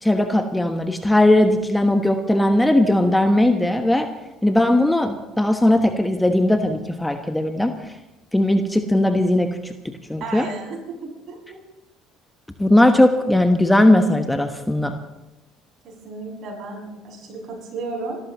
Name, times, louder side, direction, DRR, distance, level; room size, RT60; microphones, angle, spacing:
voice 1, 0.0-4.1 4.4-7.9 8.3-9.7 10.1-10.5 12.6-14.9, left 1 dB, 5° left, 6 dB, 1.2 m, -18 dB
voice 2, 10.2-11.6 15.8-18.2, right 3 dB, 55° right, -1 dB, 7.1 m, -33 dB
28.5 x 13.5 x 3.1 m, 0.98 s
hypercardioid pair, 60°, 0 cm